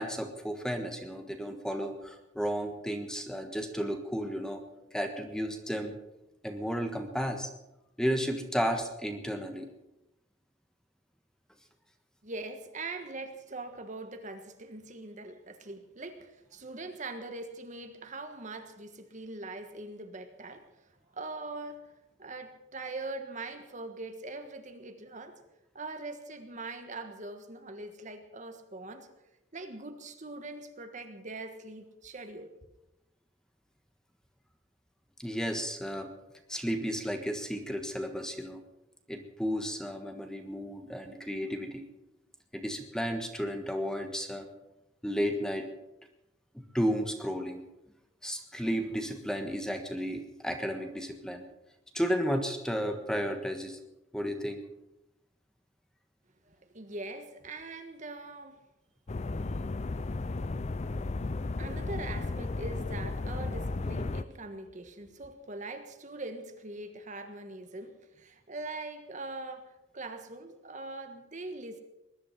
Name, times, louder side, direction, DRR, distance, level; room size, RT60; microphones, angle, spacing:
voice 1, 0.0-4.6 4.9-6.0 6.4-7.5 8.0-9.7 35.2-36.1 36.5-38.6 39.1-41.9 42.5-44.5 45.0-45.7 46.5-47.6 48.2-51.4 51.9-53.8 54.1-54.6, equal, 5° left, 5 dB, 1.5 m, -33 dB
voice 2, 12.2-20.7 21.1-21.9 22.2-25.4 25.7-29.1 29.5-32.5 56.4-58.6 61.6-71.8, right 2 dB, 40° right, 7 dB, 1.4 m, -42 dB
sound 1, 59.1-64.2, left 3 dB, 35° left, 0.5 m, -34 dB
20.5 x 11.0 x 5.8 m, 0.91 s
head